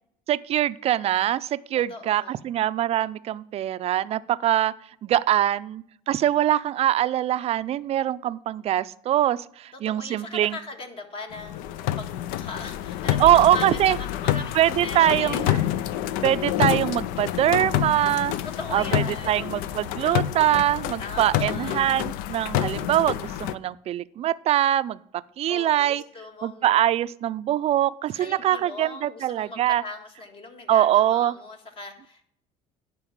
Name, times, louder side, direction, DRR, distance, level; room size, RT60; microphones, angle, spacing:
voice 1, 0.3-4.7 5.0-10.6 13.2-14.0 14.5-15.6 16.2-18.4 18.7-25.0 25.4-26.0 26.4-29.8 30.7-31.3, right 12 dB, 45° right, 16 dB, 0.4 m, -23 dB
voice 2, 1.9-2.4 9.7-15.8 18.4-19.8 21.0-21.9 25.5-26.8 28.1-32.2, left 3 dB, 35° left, 5 dB, 1.7 m, -39 dB
sound 1, 11.3-23.6, left 12 dB, 75° left, 0.5 m, -28 dB
10.5 x 4.6 x 7.2 m, 0.66 s
cardioid pair, 110°, 15 cm